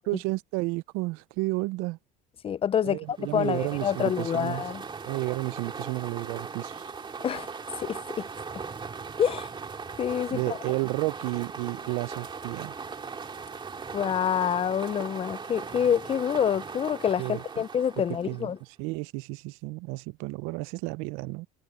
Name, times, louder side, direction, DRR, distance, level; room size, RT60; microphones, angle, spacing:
voice 1, 0.1-2.0 2.8-4.6 5.1-6.9 10.3-12.8 17.2-17.4 18.3-18.5 18.8-21.5, right 23 dB, 85° right, 0.6 m, -32 dB
voice 2, 2.4-4.8 7.2-7.5 7.8-8.3 9.2-9.5 10.0-10.4 13.9-18.6, left 8 dB, 25° left, 0.4 m, -27 dB
sound 1, 3.1-18.6, right 5 dB, 25° right, 2.5 m, -39 dB
cardioid pair, 135°, 21 cm